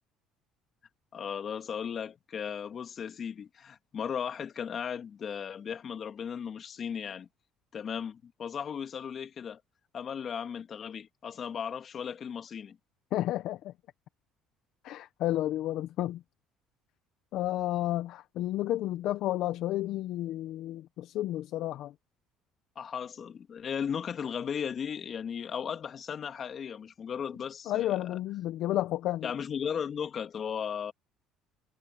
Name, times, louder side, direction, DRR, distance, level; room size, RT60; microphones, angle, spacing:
voice 1, 1.1-7.3 7.7-9.6 9.9-12.8 22.8-28.2 29.2-30.9, left 7 dB, 45° left, 2.7 m, -36 dB
voice 2, 13.1-13.7 14.8-16.2 17.3-21.9 27.7-29.3, left 14 dB, 70° left, 1.0 m, -31 dB
supercardioid pair, 95°, 0 cm